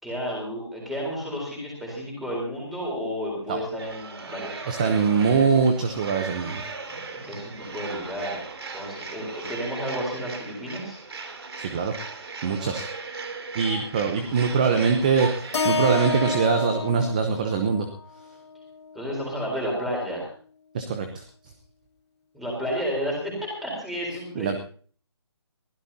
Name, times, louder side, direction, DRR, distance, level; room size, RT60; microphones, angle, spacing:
voice 1, 0.0-5.4 6.9-8.4 8.7-11.0 18.9-20.3 22.3-24.5, equal, ahead, -2 dB, 3.9 m, -32 dB
sound 1, 3.8-16.4, right 4 dB, 65° right, 2.9 m, -37 dB
voice 2, 4.7-6.6 11.6-11.9 12.4-12.9 13.5-17.9 20.7-21.2 24.4-24.6, right 5 dB, 15° right, 7 dB, 0.8 m, -23 dB
Keyboard (musical), 15.5-19.8, left 4 dB, 75° left, 1.3 m, -31 dB
22.5 x 16.0 x 2.8 m, 0.44 s
hypercardioid pair, 175°, 15 cm